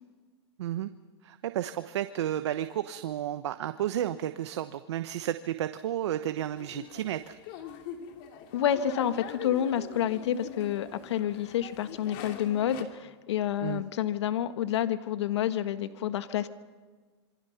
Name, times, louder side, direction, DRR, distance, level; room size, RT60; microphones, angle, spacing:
voice 1, 0.6-0.9 1.2-7.3 13.6-13.8, right 11 dB, 70° right, 10 dB, 1.1 m, -32 dB
sound 1, 6.6-12.8, left 8 dB, 45° left, 2.9 m, -43 dB
voice 2, 8.5-16.5, left 10 dB, 70° left, 10 dB, 1.5 m, -29 dB
27.0 x 24.0 x 5.9 m, 1.4 s
hypercardioid pair, 145°, 15 cm